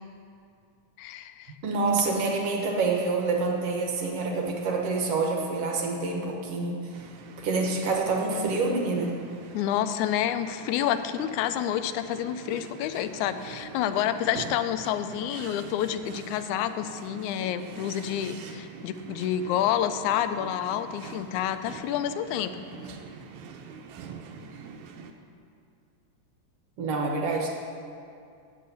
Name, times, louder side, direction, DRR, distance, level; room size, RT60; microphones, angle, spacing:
voice 1, 1.0-1.5 9.5-22.6, left 10 dB, 90° left, 10 dB, 2.0 m, -29 dB
voice 2, 1.6-7.1 7.4-9.1 26.8-27.5, right 3 dB, 60° right, 1 dB, 1.9 m, -27 dB
sound 1, 6.9-25.1, right 5 dB, 85° right, 2.2 m, -45 dB
8.5 x 7.8 x 8.2 m, 2.5 s
omnidirectional pair, 3.3 m